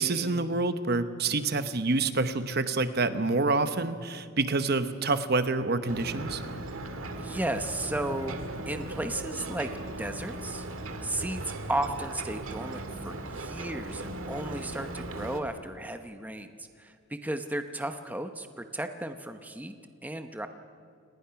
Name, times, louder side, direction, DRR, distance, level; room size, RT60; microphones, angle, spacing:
voice 1, 0.0-6.4, right 3 dB, 50° right, 11 dB, 1.0 m, -27 dB
Ocean, 5.9-15.4, right 2 dB, 80° right, 1.8 m, -38 dB
voice 2, 7.1-8.4 8.7-9.7 10.0-10.7 11.0-19.8 20.0-20.5, right 1 dB, 10° right, 7 dB, 0.8 m, -34 dB
29.5 x 19.5 x 5.9 m, 2.3 s
head